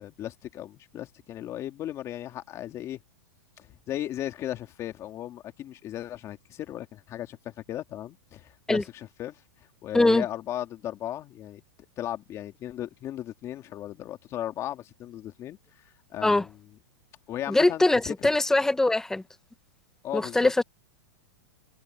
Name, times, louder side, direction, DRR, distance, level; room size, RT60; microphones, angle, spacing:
voice 1, 0.0-3.0 3.6-9.4 9.8-11.6 12.0-15.6 16.1-16.6 17.3-18.3 20.0-20.5, left 12 dB, 25° left, 2.6 m, -36 dB
voice 2, 17.5-19.2 20.1-20.6, left 2 dB, 5° left, 1.3 m, -22 dB
supercardioid pair, 150°, 11 cm